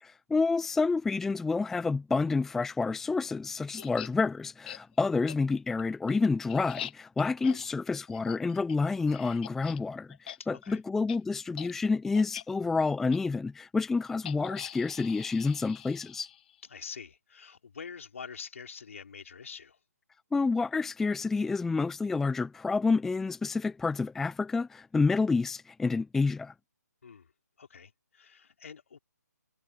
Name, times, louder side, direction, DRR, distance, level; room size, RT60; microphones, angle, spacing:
voice 1, 0.0-16.3 20.3-26.5, left 4 dB, 5° left, 0.6 m, -29 dB
sound 1, 3.7-4.1 4.6-4.8 5.3-5.4 5.8-9.8 10.1-10.4 10.6-10.8 11.1-11.2 11.5-11.7 12.1-12.4 13.1-13.2 14.2-16.6, left 11 dB, 30° left, 1.3 m, -44 dB
voice 2, 10.4-10.8 16.7-19.8 27.0-27.3 27.6-29.0, left 6 dB, 50° left, 4.6 m, -46 dB
figure-of-eight pair, 140°, 9 cm